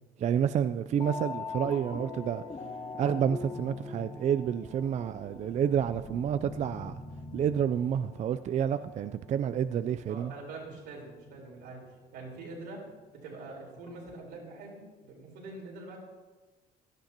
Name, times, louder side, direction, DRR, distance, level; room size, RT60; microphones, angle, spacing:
voice 1, 0.2-2.4 3.0-7.0 7.3-10.3, right 8 dB, 45° right, 0.4 m, -29 dB
sound 1, 0.9-11.6 12.4-12.5 13.8-14.1, left 4 dB, 25° left, 1.0 m, -43 dB
voice 2, 10.0-11.8 12.1-12.8 13.1-16.0, right 3 dB, 80° right, 4.1 m, -44 dB
16.0 x 11.5 x 2.9 m
cardioid pair, 110°, 17 cm